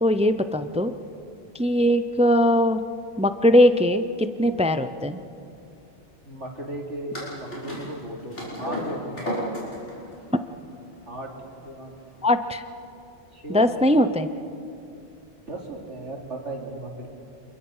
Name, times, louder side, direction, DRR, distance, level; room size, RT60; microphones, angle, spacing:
voice 1, 0.0-0.9 1.5-2.8 3.2-5.2 12.2-12.6 13.5-14.3, left 1 dB, 10° right, 10 dB, 0.4 m, -20 dB
voice 2, 6.3-9.4 11.1-11.3 11.6-11.9 13.3-14.1 15.5-17.1, right 1 dB, 80° right, 0 dB, 3.4 m, -36 dB
sound 1, 7.1-12.3, equal, 75° left, 6.0 m, -34 dB
28.0 x 22.0 x 5.6 m, 2.6 s
omnidirectional pair, 1.2 m